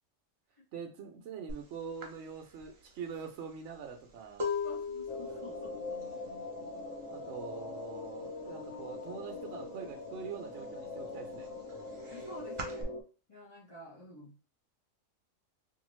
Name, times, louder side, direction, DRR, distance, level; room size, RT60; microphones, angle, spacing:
voice 1, 0.7-4.5 7.0-11.5, right 6 dB, 65° right, 4 dB, 0.9 m, -44 dB
sound 1, 1.5-1.7 2.0-7.7 7.9-8.5 8.7-9.9 10.3-12.8, left 4 dB, 50° right, 0.3 m, -40 dB
voice 2, 4.6-6.0 12.1-12.9 13.3-14.5, left 1 dB, 30° left, -5 dB, 0.7 m, -50 dB
sound 2, 5.1-13.0, left 3 dB, 75° left, 1.0 m, -42 dB
2.6 x 2.4 x 3.0 m, 0.33 s
omnidirectional pair, 1.4 m